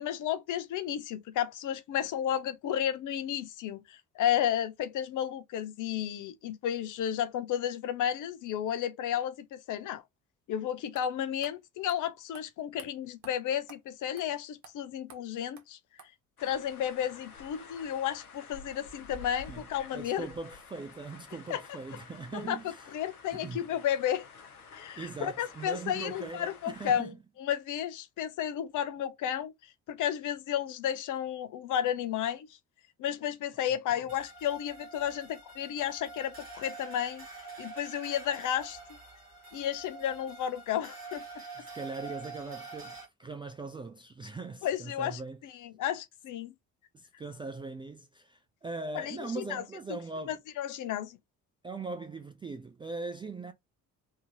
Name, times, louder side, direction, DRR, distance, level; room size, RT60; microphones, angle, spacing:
voice 1, 0.0-10.0 10.5-15.8 16.4-20.3 21.5-21.6 22.3-22.6 22.9-24.2 24.7-27.1 27.4-29.5 29.9-32.5 33.0-37.3 37.6-38.8 39.5-41.2 44.6-46.5 48.9-49.6 50.3-51.2, left 10 dB, 45° left, 0.7 m, -32 dB
sound 1, 10.5-10.6 10.9-11.1 11.4-11.5 11.9-12.0 12.3-12.5 12.8-12.9 13.2-13.3 13.7-13.8 14.2-14.3 14.6-14.7 15.1-15.2 15.6-15.7 16.0-16.1, right 6 dB, 40° right, 1.2 m, -52 dB
sound 2, 16.4-27.0, left 5 dB, 85° left, 0.7 m, -50 dB
voice 2, 19.9-22.9 23.3-23.6 25.0-27.2 33.9-34.1 41.6-45.4 46.9-50.4 51.6-53.5, right 3 dB, 15° right, 0.3 m, -40 dB
sound 3, 34.1-43.0, right 3 dB, 85° right, 1.5 m, -46 dB
3.5 x 2.7 x 2.8 m
figure-of-eight pair, 45°, 44 cm